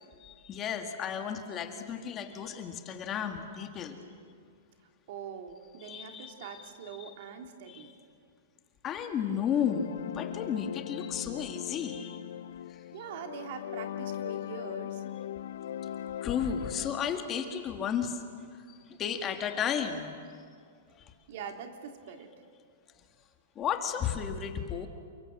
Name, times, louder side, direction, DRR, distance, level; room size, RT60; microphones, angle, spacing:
voice 1, 0.2-4.0 5.8-6.6 7.0-7.1 7.7-7.9 8.8-9.9 10.1-12.2 16.2-18.2 18.7-20.1 20.9-21.0 23.6-24.9, left 8 dB, 20° left, 5 dB, 1.9 m, -33 dB
voice 2, 5.1-7.9 12.9-15.0 21.3-22.3, right 7 dB, 55° right, 4 dB, 3.0 m, -43 dB
sound 1, 9.2-17.1, left 10 dB, 75° left, 0.6 m, -39 dB
29.5 x 23.5 x 7.8 m, 2.2 s
hypercardioid pair, 155°, 0 cm